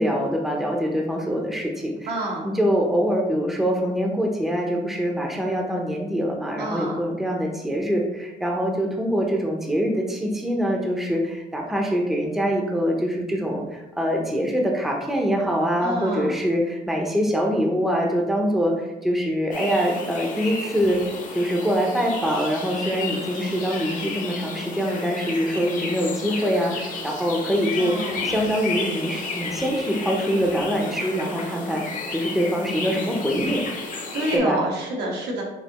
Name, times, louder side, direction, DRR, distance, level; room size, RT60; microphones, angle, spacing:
voice 1, 0.0-2.1 2.4-21.0 21.3-27.9 28.2-33.6 34.3-34.6, equal, ahead, 0 dB, 0.7 m, -24 dB
voice 2, 2.1-2.4 6.5-7.0 15.8-16.4 27.8-28.3 34.1-35.4, right 1 dB, 75° right, -2 dB, 1.3 m, -28 dB
sound 1, 19.5-34.4, left 3 dB, 50° left, 0.9 m, -32 dB
5.3 x 2.6 x 2.9 m, 1.0 s
cardioid pair, 110°, 17 cm